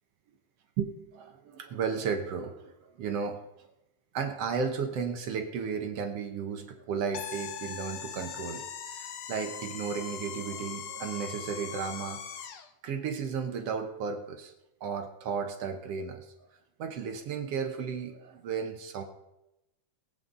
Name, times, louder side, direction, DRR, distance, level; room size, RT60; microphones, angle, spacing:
voice 1, 0.8-3.4 4.1-12.2 12.8-14.5 14.8-16.3 16.8-19.0, right 6 dB, 60° right, 6 dB, 1.8 m, -34 dB
sound 1, 7.1-12.7, left 8 dB, 85° left, 1.1 m, -40 dB
22.5 x 8.6 x 3.8 m, 0.91 s
omnidirectional pair, 3.7 m